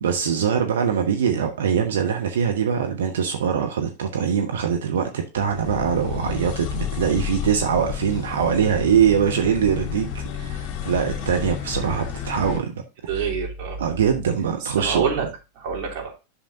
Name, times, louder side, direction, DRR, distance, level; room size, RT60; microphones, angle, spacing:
voice 1, 0.0-12.7 13.8-15.1, right 7 dB, 60° right, 1.1 m, -22 dB
sound 1, 5.4-12.6, left 9 dB, 35° left, 1.9 m, -31 dB
voice 2, 13.1-13.8 14.6-15.3 15.5-16.2, right 6 dB, 40° right, 3.3 m, -26 dB
11.0 x 6.7 x 2.6 m
figure-of-eight pair, 90°, 0 cm